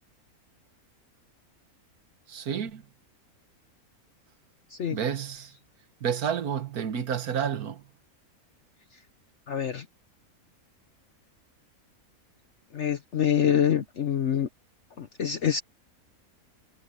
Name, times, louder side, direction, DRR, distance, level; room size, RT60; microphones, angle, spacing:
voice 1, 2.3-2.8 4.9-5.5 6.0-7.8, right 8 dB, 75° right, 1.8 m, -30 dB
voice 2, 9.5-9.8 12.7-14.5 15.0-15.6, left 9 dB, 55° left, 1.1 m, -25 dB
omnidirectional pair, 1.6 m